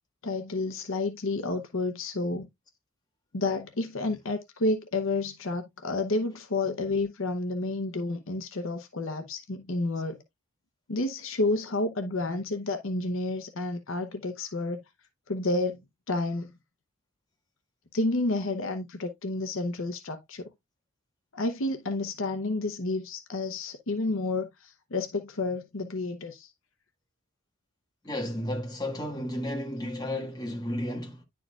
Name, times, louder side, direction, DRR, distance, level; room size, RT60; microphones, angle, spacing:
voice 1, 0.2-2.5 3.3-10.2 10.9-14.8 15.3-16.5 17.9-20.5 21.3-26.5, left 2 dB, 60° left, 0.8 m, -30 dB
voice 2, 28.0-31.2, left 1 dB, 20° left, 1.6 m, -33 dB
10.0 x 4.6 x 2.3 m
head